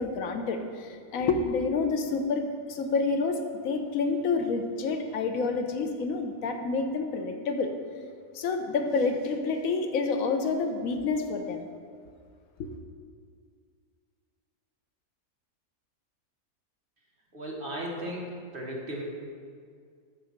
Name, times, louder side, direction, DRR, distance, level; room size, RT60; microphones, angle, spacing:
voice 1, 0.0-7.7 8.3-11.7 12.6-12.7, left 4 dB, 65° left, 5 dB, 1.2 m, -28 dB
voice 2, 17.3-19.0, equal, 35° right, -3 dB, 1.5 m, -36 dB
6.7 x 6.1 x 6.6 m, 2.1 s
omnidirectional pair, 1.6 m